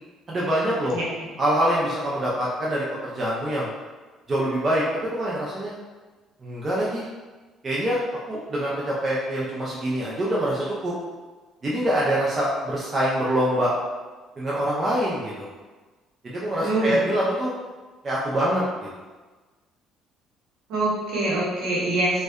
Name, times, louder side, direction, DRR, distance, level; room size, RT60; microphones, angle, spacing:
voice 1, 0.3-1.0 1.4-3.7 4.3-5.7 6.4-7.0 7.6-8.0 8.3-10.9 11.6-13.7 14.4-15.5 16.2-17.5 18.0-18.6, right 1 dB, 20° right, -6 dB, 0.3 m, -25 dB
voice 2, 16.6-17.0 20.7-22.2, right 2 dB, 65° right, -6 dB, 0.9 m, -24 dB
2.6 x 2.1 x 2.3 m, 1.3 s
cardioid pair, 165°, 0 cm